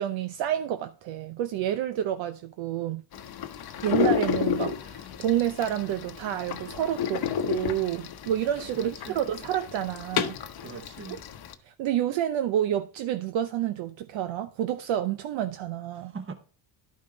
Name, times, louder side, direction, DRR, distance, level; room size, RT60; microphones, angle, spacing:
voice 1, 0.0-3.0 3.8-10.4 11.7-16.1, right 11 dB, 65° right, 0.8 m, -29 dB
sound 1, 3.1-11.5, left 7 dB, 50° left, 1.0 m, -31 dB
voice 2, 8.7-9.2 10.6-11.2 15.9-16.3, right 5 dB, 25° right, 1.0 m, -41 dB
11.0 x 5.5 x 3.9 m
cardioid pair, 115°, 50 cm